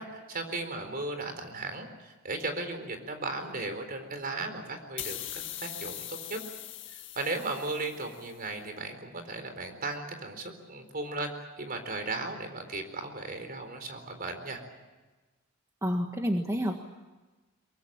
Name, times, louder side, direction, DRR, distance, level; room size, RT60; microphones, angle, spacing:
voice 1, 0.0-6.4 6.9-14.6, right 2 dB, 45° right, 7 dB, 4.2 m, -36 dB
sound 1, 5.0-8.4, left 13 dB, 60° left, 1.9 m, -41 dB
voice 2, 15.8-16.8, equal, 15° right, 3 dB, 1.6 m, -29 dB
23.5 x 23.5 x 8.8 m, 1.2 s
head